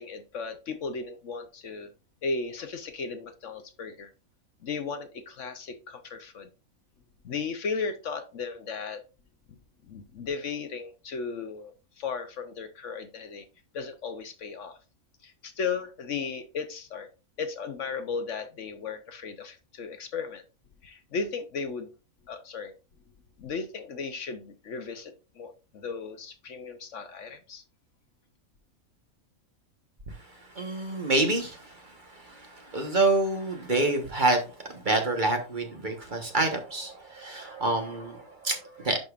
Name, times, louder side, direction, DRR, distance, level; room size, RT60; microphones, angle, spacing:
voice 1, 0.0-1.9 2.2-4.1 4.6-6.5 7.2-9.0 9.5-9.6 9.8-13.5 13.7-14.8 15.2-17.1 17.4-20.4 20.8-21.9 22.3-22.7 23.4-27.6, left 5 dB, 60° left, 8 dB, 1.1 m, -35 dB
voice 2, 30.5-39.0, right 2 dB, 35° right, 4 dB, 1.3 m, -27 dB
10.5 x 5.1 x 2.4 m, 0.31 s
omnidirectional pair, 1.5 m